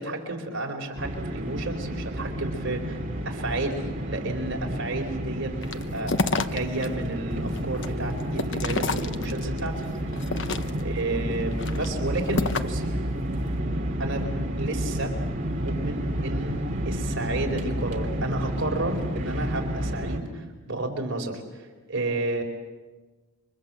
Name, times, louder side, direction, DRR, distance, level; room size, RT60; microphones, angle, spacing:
voice 1, 0.0-3.0 3.2-10.3 10.8-12.9 14.0-14.3 14.6-15.1 15.6-16.6 16.8-22.4, right 2 dB, 55° right, 2 dB, 4.5 m, -32 dB
sound 1, 1.0-20.2, equal, 35° right, 2.9 m, -30 dB
sound 2, 5.6-6.9 7.3-9.6 10.1-11.0 11.5-12.9, left 3 dB, 55° left, 1.1 m, -29 dB
29.0 x 24.5 x 7.7 m, 1.2 s
head